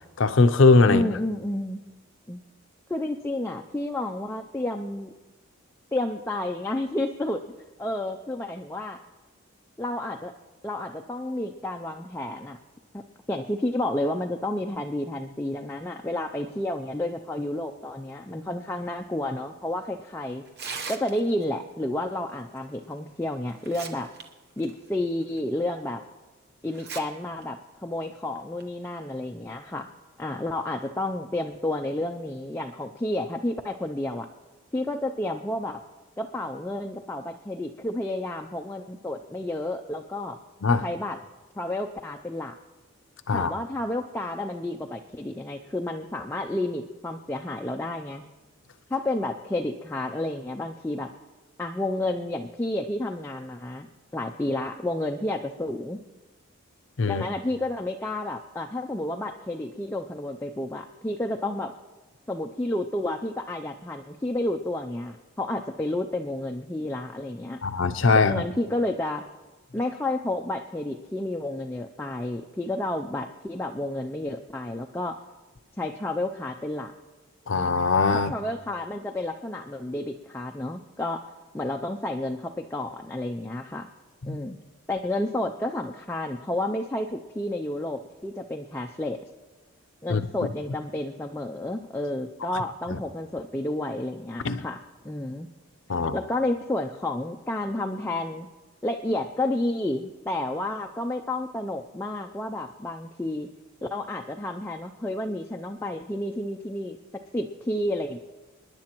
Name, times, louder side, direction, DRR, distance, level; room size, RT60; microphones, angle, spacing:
voice 1, 0.2-1.0 40.6-40.8 43.3-43.5 57.0-57.2 67.6-68.5 77.5-78.3 84.3-84.4 90.1-90.3 94.4-94.6 95.9-96.2, left 3 dB, 60° left, 10 dB, 0.5 m, -20 dB
voice 2, 0.9-1.8 2.3-2.4 2.9-5.1 5.9-7.4 7.8-9.0 9.8-10.3 10.6-12.6 12.9-20.4 20.9-24.1 24.6-26.0 26.6-29.9 30.2-34.3 34.7-35.8 36.2-40.4 40.8-41.2 41.6-42.5 43.3-48.2 48.9-51.1 51.6-53.9 54.1-56.0 57.0-61.7 62.3-67.6 68.2-69.2 69.7-75.2 75.8-76.9 78.1-83.9 84.3-84.6 84.9-89.2 90.0-95.5 96.1-98.5 98.8-103.5 103.8-108.2, left 1 dB, 10° left, 2 dB, 0.3 m, -31 dB
Tearing, 20.5-21.4 22.9-23.0 23.5-24.2 24.6-24.7 25.4-25.5 26.7-27.0 27.4-27.5 28.4-28.6, right 5 dB, 45° right, 0.9 m, -37 dB
27.5 x 10.5 x 3.0 m, 1.2 s
head